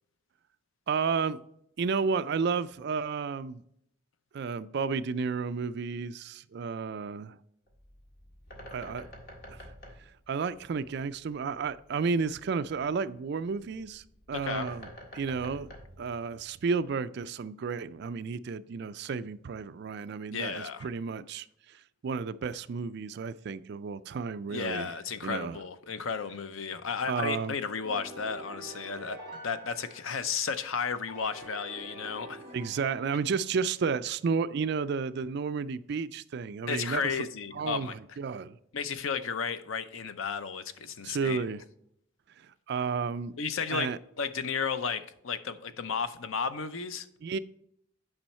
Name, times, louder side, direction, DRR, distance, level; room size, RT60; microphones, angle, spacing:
voice 1, 0.9-1.4 1.8-3.6 4.3-7.3 8.7-9.1 9.5-9.7 10.3-14.9 15.1-15.7 16.0-21.5 22.0-24.9 25.2-25.6 27.1-27.6 32.5-37.0 37.5-38.6 41.0-41.6 42.4-43.3 43.7-44.0 47.2-47.4, right 5 dB, 50° right, 0.3 m, -32 dB
Bird, 7.7-16.8, equal, 45° left, 1.7 m, -49 dB
voice 2, 14.3-14.7 20.3-20.9 24.5-32.4 36.7-37.9 38.7-41.4 43.4-47.1, left 6 dB, 75° left, 0.6 m, -33 dB
sound 1, 27.8-30.5 31.1-33.6, right 1 dB, 15° left, 2.5 m, -47 dB
8.9 x 5.5 x 4.3 m
head